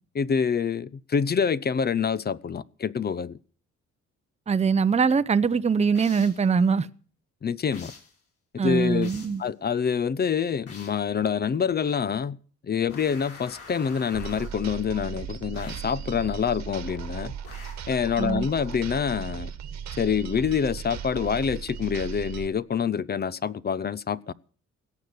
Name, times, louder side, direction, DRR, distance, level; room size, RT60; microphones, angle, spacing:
voice 1, 0.1-3.4 7.4-7.9 8.5-9.1 9.4-12.4 12.6-17.3 17.9-19.5 20.0-24.3, left 7 dB, 30° left, 0.6 m, -26 dB
voice 2, 4.5-6.9 8.6-9.4 18.2-18.5, right 5 dB, 20° right, 0.7 m, -22 dB
sound 1, 5.9-6.5 7.7-8.2 9.0-9.4 10.7-11.1 12.9-14.7 15.5-16.0 17.4-17.9, left 4 dB, 50° left, 8.0 m, -46 dB
sound 2, 14.1-22.5, right 8 dB, 65° right, 1.5 m, -37 dB
17.5 x 6.6 x 9.6 m
cardioid pair, 90°, 30 cm